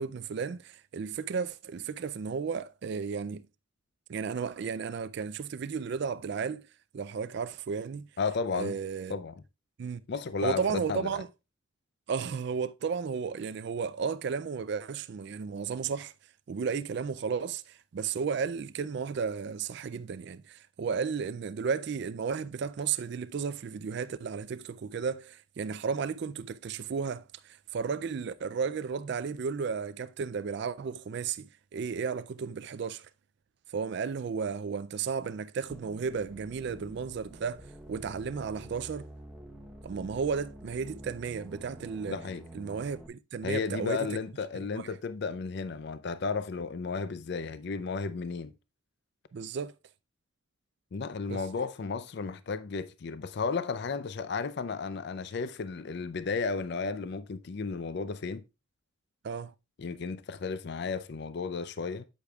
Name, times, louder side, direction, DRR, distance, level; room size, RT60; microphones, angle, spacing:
voice 1, 0.0-3.5 4.1-6.7 6.9-8.1 8.5-9.2 9.8-10.0 10.4-11.3 12.1-16.1 16.5-33.1 33.7-39.1 39.8-42.2 42.5-44.2 44.7-44.9 49.3-49.7 51.3-51.4 59.2-59.5, right 6 dB, 50° right, 0.3 m, -34 dB
voice 2, 8.2-8.8 9.1-9.4 10.1-11.2 42.1-42.5 43.4-48.5 50.9-58.4 59.8-62.1, left 4 dB, 50° left, 0.4 m, -33 dB
sound 1, 35.7-43.1, right 1 dB, 5° right, 0.9 m, -48 dB
8.5 x 8.2 x 2.3 m
head